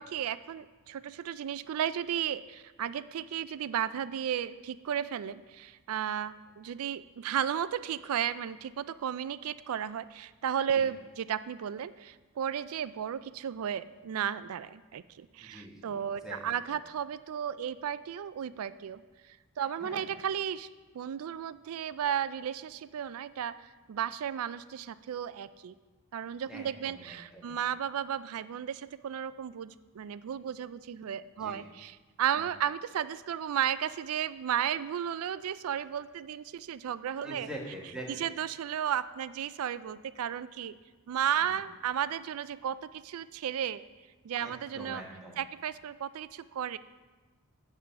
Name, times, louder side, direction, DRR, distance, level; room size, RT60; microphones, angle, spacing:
voice 1, 0.0-19.0 19.3-20.7 20.9-23.6 23.9-25.7 26.1-37.5 38.1-40.8 41.1-43.8 44.2-45.0 45.4-46.8, right 9 dB, 75° right, 15 dB, 0.3 m, -34 dB
voice 2, 15.4-16.5 19.8-20.1 26.5-27.6 31.3-31.6 37.2-38.3 44.4-45.4, right 1 dB, 5° right, -3 dB, 1.3 m, -44 dB
9.5 x 3.7 x 6.9 m, 1.3 s
head